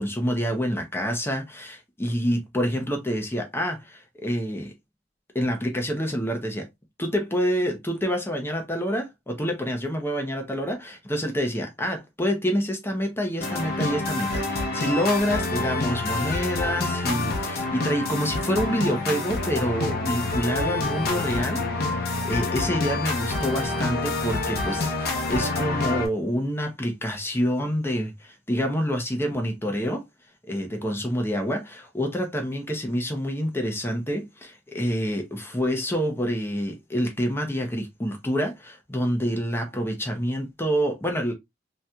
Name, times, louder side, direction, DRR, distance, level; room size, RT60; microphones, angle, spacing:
voice 1, 0.0-4.7 5.3-6.7 7.0-21.6 21.9-30.0 30.5-41.3, equal, 10° left, 0.7 m, -27 dB
sound 1, 13.4-26.1, left 2 dB, 50° left, 0.8 m, -27 dB
3.2 x 2.8 x 2.3 m
head